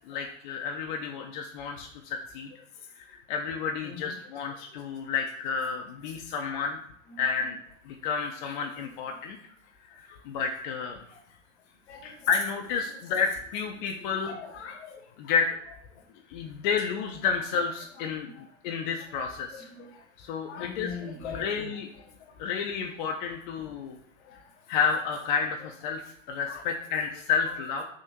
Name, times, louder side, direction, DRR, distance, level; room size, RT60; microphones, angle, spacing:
voice 1, 0.0-2.5 3.0-6.8 7.2-7.6 7.9-9.4 9.9-11.0 12.0-14.3 15.2-15.5 16.3-19.7 20.2-20.9 21.3-21.9 22.4-24.0 24.7-27.8, left 6 dB, 40° left, 3 dB, 0.4 m, -31 dB
voice 2, 3.8-4.1 7.1-7.5 8.4-8.5 8.8-8.9 11.9-12.1 14.1-15.0 15.2-15.4 18.2-18.4 19.2-19.9 20.5-21.8 26.5-26.6, left 5 dB, 60° left, 4 dB, 0.8 m, -42 dB
3.5 x 2.7 x 2.8 m, 0.67 s
figure-of-eight pair, 85°, 39 cm